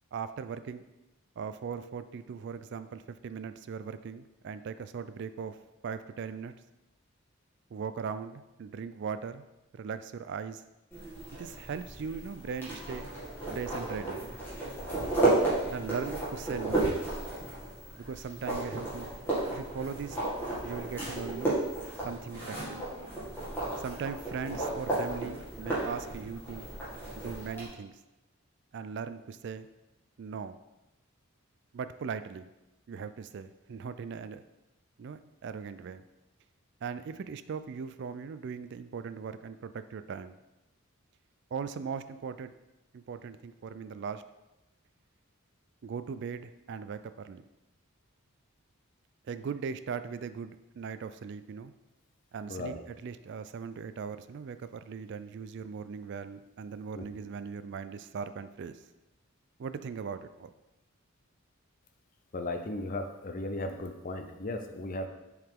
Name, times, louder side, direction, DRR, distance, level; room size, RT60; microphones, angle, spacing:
voice 1, 0.1-0.8 1.4-5.6 5.8-6.5 7.7-9.4 9.7-10.6 11.3-13.1 13.5-14.2 15.7-16.9 18.0-19.1 19.5-20.2 20.6-21.6 22.0-22.8 23.8-26.7 27.1-27.9 28.7-29.7 30.2-30.6 31.7-32.5 32.9-34.4 35.0-36.0 36.8-40.4 41.5-42.5 42.9-44.2 45.8-47.4 49.3-51.7 52.3-58.8 59.6-60.5, right 6 dB, 55° right, 12 dB, 0.3 m, -39 dB
sound 1, 10.9-27.7, right 2 dB, 10° left, 2.3 m, -33 dB
voice 2, 52.5-52.8 57.0-57.1 62.3-65.1, left 2 dB, 40° left, 6 dB, 0.6 m, -36 dB
7.8 x 4.9 x 3.7 m, 0.98 s
head